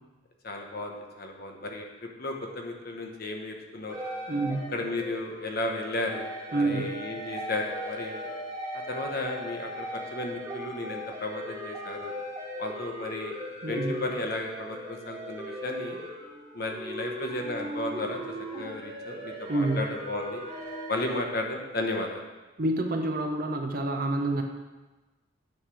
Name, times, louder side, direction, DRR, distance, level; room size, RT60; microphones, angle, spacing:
voice 1, 0.4-4.0 4.7-8.3 8.7-12.1 12.6-13.3 13.7-16.0 16.5-18.2 18.6-20.4 20.9-22.2, left 2 dB, 50° left, 2 dB, 0.9 m, -34 dB
sound 1, 3.9-21.2, equal, 15° right, 1.5 m, -38 dB
voice 2, 4.3-4.7 6.5-6.9 13.6-14.0 19.5-19.8 22.6-24.4, right 2 dB, 45° right, 4 dB, 0.6 m, -28 dB
8.6 x 3.3 x 6.2 m, 1.2 s
head